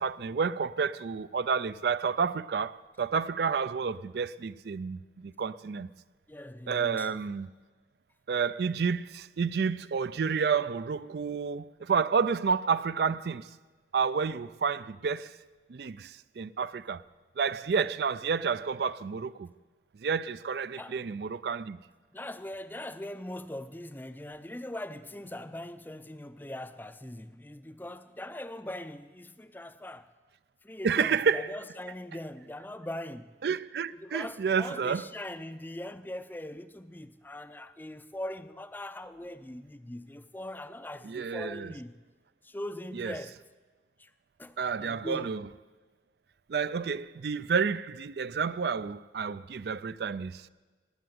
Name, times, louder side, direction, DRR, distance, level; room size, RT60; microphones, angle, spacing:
voice 1, 0.0-5.9 6.7-7.5 8.3-13.5 13.9-15.4 15.7-17.0 17.4-19.5 20.0-21.8 30.8-31.5 33.4-35.0 41.0-41.7 43.0-43.1 44.6-45.5 46.5-50.5, right 5 dB, 60° right, 0.4 m, -30 dB
voice 2, 6.3-7.3 20.7-21.0 22.1-30.1 30.6-33.3 33.9-42.0 42.4-43.4 44.0-44.1 44.4-45.3, left 1 dB, 10° left, 0.4 m, -41 dB
18.0 x 7.9 x 9.3 m
head